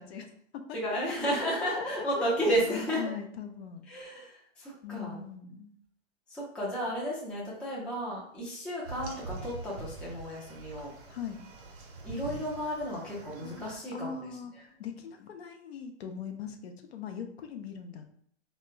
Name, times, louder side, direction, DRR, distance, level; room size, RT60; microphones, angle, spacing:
voice 1, 0.0-0.8 2.2-2.3 3.0-3.8 4.8-5.7 11.1-11.4 13.9-18.0, left 7 dB, 60° left, 5 dB, 0.6 m, -40 dB
voice 2, 0.7-3.0 3.9-5.2 6.3-10.9 12.0-14.6, equal, 5° left, -6 dB, 0.4 m, -33 dB
sound 1, 8.8-13.8, right 3 dB, 45° right, 0.8 m, -44 dB
4.2 x 2.1 x 2.3 m, 0.63 s
hypercardioid pair, 120°, 36 cm